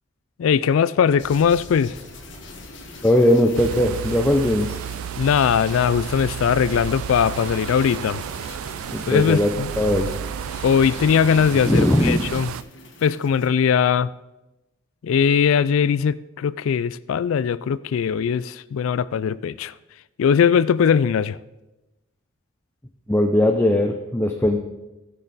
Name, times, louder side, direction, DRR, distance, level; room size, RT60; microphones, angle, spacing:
voice 1, 0.4-2.0 5.2-8.2 9.1-9.7 10.6-12.5 13.0-14.1 15.0-19.7 20.2-21.4, left 7 dB, 75° left, 0.3 m, -20 dB
sound 1, 1.2-13.5, left 2 dB, 55° left, 1.7 m, -42 dB
voice 2, 3.0-4.7 8.9-10.1 11.7-12.2 23.1-24.6, left 1 dB, 10° left, 0.5 m, -19 dB
sound 2, 3.5-12.6, right 9 dB, 85° right, 0.3 m, -32 dB
16.0 x 6.6 x 4.0 m
head